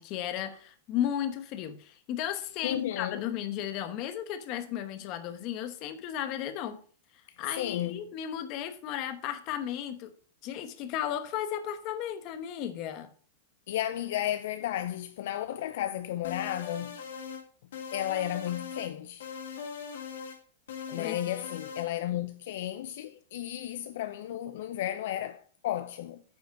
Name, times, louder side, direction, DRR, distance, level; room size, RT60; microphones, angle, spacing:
voice 1, 0.0-6.8 7.4-10.1 10.4-13.1 21.0-21.2, left 10 dB, 30° left, 1.0 m, -34 dB
voice 2, 2.6-3.2 7.4-8.0 13.7-16.9 17.9-19.3 20.9-26.2, left 12 dB, 55° left, 0.5 m, -33 dB
sound 1, 16.2-17.4 17.7-18.9 19.2-20.4 20.7-21.9, left 6 dB, 80° left, 2.1 m, -40 dB
9.4 x 5.1 x 5.8 m
supercardioid pair, 175°, 0 cm